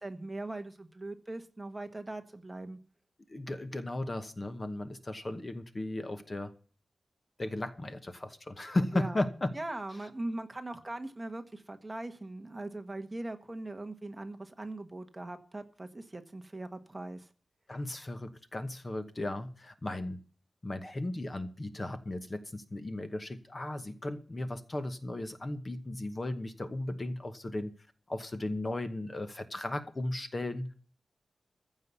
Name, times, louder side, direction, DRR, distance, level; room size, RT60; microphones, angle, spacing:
voice 1, 0.0-2.8 8.9-9.2 9.5-17.3, right 2 dB, 15° right, 1.2 m, -40 dB
voice 2, 3.3-6.5 7.4-9.5 17.7-20.2 20.6-27.7 28.1-30.7, left 1 dB, 25° left, 1.0 m, -36 dB
15.0 x 5.6 x 8.2 m
wide cardioid pair, 165°, 0 cm